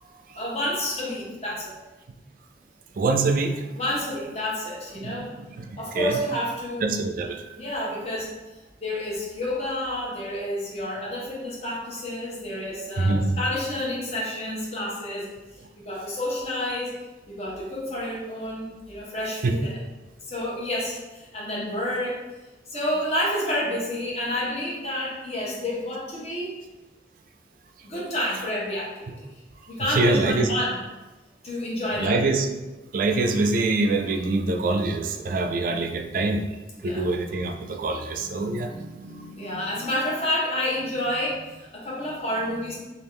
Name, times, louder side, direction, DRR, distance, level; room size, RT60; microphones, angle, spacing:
voice 1, 0.3-1.7 3.7-5.3 5.8-7.0 7.5-8.3 8.8-15.3 15.8-17.0 17.3-19.7 20.2-22.2 22.7-26.5 27.8-29.1 29.7-30.8 31.4-32.2 36.7-37.1 38.3-42.8, left 1 dB, 35° left, -5 dB, 0.9 m, -29 dB
voice 2, 3.0-3.6 5.0-5.7 5.9-6.1 6.8-7.6 13.0-13.4 19.4-19.5 29.8-30.5 32.0-32.5 32.9-36.5 36.8-38.7, right 3 dB, 50° right, 5 dB, 0.3 m, -24 dB
3.4 x 2.4 x 3.2 m, 1.1 s
head